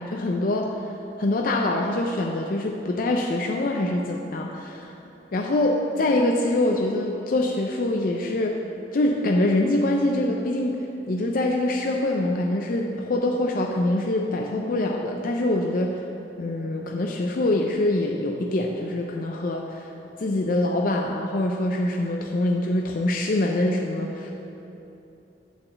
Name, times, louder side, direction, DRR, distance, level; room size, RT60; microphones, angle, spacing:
voice 1, 0.0-5.0 5.3-8.6 8.9-16.0 16.4-19.9 20.2-24.3, left 1 dB, 50° left, 1 dB, 0.4 m, -24 dB
8.8 x 4.1 x 6.8 m, 2.9 s
head